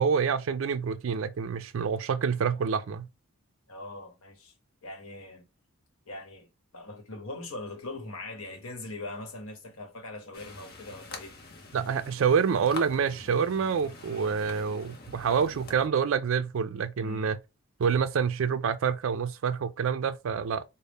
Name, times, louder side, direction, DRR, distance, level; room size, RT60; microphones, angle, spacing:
voice 1, 0.0-3.1 11.7-17.4 17.8-20.6, right 6 dB, 60° right, 0.3 m, -27 dB
voice 2, 3.7-4.5 4.8-5.4 6.1-11.4 17.0-17.3, left 2 dB, 75° left, 1.0 m, -41 dB
sound 1, 10.3-15.9, left 3 dB, 45° left, 0.7 m, -45 dB
4.0 x 2.0 x 3.4 m
head